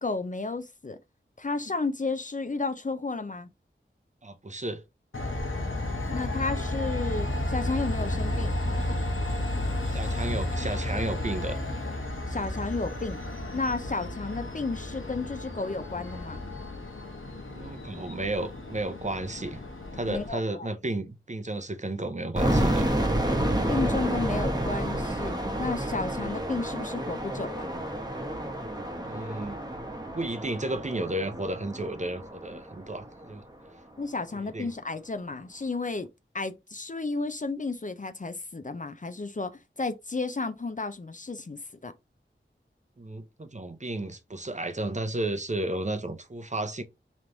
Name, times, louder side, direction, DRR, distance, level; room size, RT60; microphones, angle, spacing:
voice 1, 0.0-1.0 1.4-3.5 6.1-8.6 12.3-13.2 13.5-16.4 20.1-20.7 23.7-25.3 25.6-27.7 34.0-36.1 36.3-41.9, left 3 dB, 40° left, 0.5 m, -32 dB
voice 2, 4.2-4.8 9.9-11.6 17.5-19.6 19.9-22.9 29.0-29.6 30.1-33.4 34.3-34.7 43.0-46.8, right 2 dB, 35° right, 0.7 m, -33 dB
Train, 5.1-20.3, left 1 dB, 75° left, 1.1 m, -32 dB
sound 1, 22.4-33.2, right 1 dB, 20° right, 1.1 m, -30 dB
3.3 x 3.1 x 3.8 m
wide cardioid pair, 50°, 21 cm